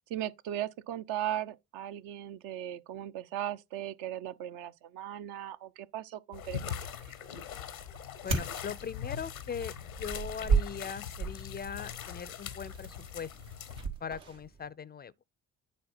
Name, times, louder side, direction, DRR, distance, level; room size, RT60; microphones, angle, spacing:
voice 1, 0.1-6.7, right 11 dB, 65° right, 0.6 m, -37 dB
sound 1, 6.3-13.9, left 9 dB, 90° left, 0.9 m, -42 dB
sound 2, 6.6-14.7, right 5 dB, 85° right, 1.9 m, -36 dB
voice 2, 8.2-9.7 10.0-13.4 14.0-15.1, left 7 dB, 25° left, 0.4 m, -40 dB
9.3 x 4.2 x 4.2 m
figure-of-eight pair, 45°, 40 cm